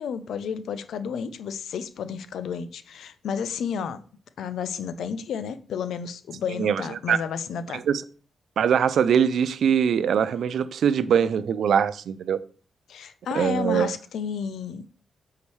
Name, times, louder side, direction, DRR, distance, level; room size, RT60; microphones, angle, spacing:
voice 1, 0.0-4.0 4.4-7.8 12.9-14.8, left 7 dB, 90° left, 0.5 m, -31 dB
voice 2, 6.6-7.2 7.7-8.0 8.6-12.4 13.3-13.9, right 8 dB, 80° right, 0.4 m, -22 dB
8.3 x 4.8 x 3.2 m
cardioid pair, 100°, 0 cm